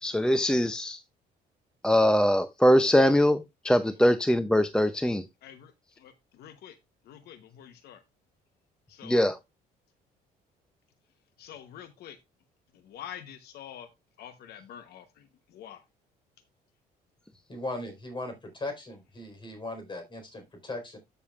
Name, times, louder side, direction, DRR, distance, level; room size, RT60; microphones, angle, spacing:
voice 1, 0.0-1.0 1.8-5.2 9.0-9.4, equal, 5° left, 0.5 m, -22 dB
voice 2, 6.4-6.7 7.1-8.0 9.0-9.2 11.4-12.2 12.9-13.9 14.2-15.0 15.6-15.8, left 10 dB, 70° left, 1.0 m, -45 dB
voice 3, 17.5-21.0, left 2 dB, 30° left, 4.3 m, -38 dB
13.0 x 6.7 x 2.4 m
cardioid pair, 110°, 17 cm